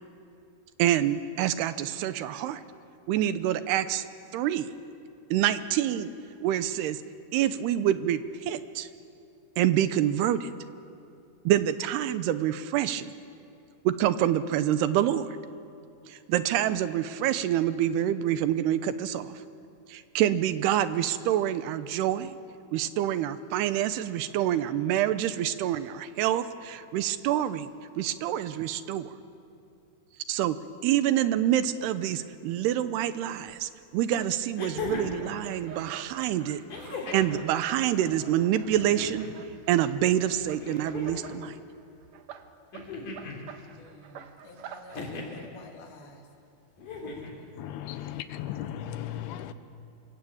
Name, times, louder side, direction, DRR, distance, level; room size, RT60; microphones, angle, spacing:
voice 1, 0.8-2.6 3.1-4.0 4.3-4.7 5.3-6.1 6.4-7.0 7.3-8.9 9.6-10.5 11.5-13.1 13.8-15.3 16.1-19.4 19.9-22.4 22.7-27.7 28.0-29.1 30.3-30.6 30.8-36.6 37.1-39.3 39.7-41.5, right 11 dB, 85° right, 2.9 m, -26 dB
sound 1, 33.5-33.6 34.6-35.3 36.7-37.4 38.6-39.4 40.6-41.4 42.7-43.4 44.9-45.4 46.8-47.4 48.7-48.8, left 3 dB, 55° left, 5.2 m, -37 dB
sound 2, 34.8-41.6 41.9-45.1, right 9 dB, 70° right, 1.6 m, -48 dB
voice 2, 43.8-46.3 47.1-47.2, left 2 dB, 70° left, 4.5 m, -50 dB
voice 3, 47.6-49.5, left 11 dB, 90° left, 3.0 m, -36 dB
26.5 x 22.5 x 8.8 m
omnidirectional pair, 4.6 m